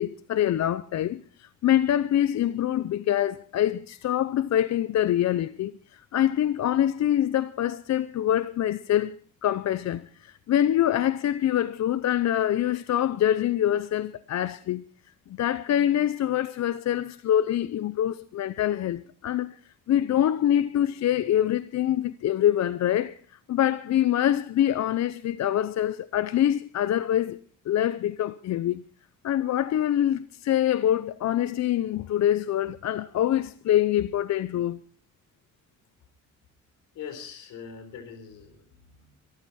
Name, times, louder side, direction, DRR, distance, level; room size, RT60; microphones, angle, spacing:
voice 1, 0.0-14.8 15.3-19.6 19.9-28.8 29.2-34.8, left 11 dB, 60° left, 0.7 m, -25 dB
voice 2, 36.9-39.1, left 7 dB, 90° left, 4.1 m, -42 dB
23.0 x 14.0 x 4.3 m
cardioid pair, 90°, 30 cm